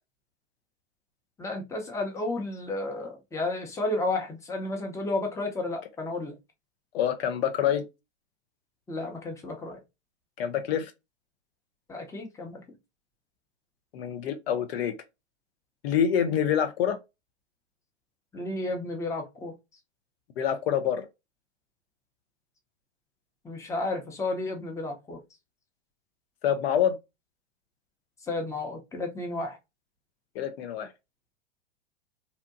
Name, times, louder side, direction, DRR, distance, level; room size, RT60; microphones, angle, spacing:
voice 1, 1.4-6.4 8.9-9.8 11.9-12.6 18.3-19.5 23.4-25.2 28.3-29.6, left 2 dB, 10° left, 0.6 m, -32 dB
voice 2, 6.9-7.8 10.4-10.9 13.9-14.9 15.8-17.0 20.4-21.1 26.4-27.0 30.4-30.9, left 9 dB, 60° left, 0.5 m, -26 dB
2.7 x 2.1 x 2.5 m
figure-of-eight pair, 95°, 35 cm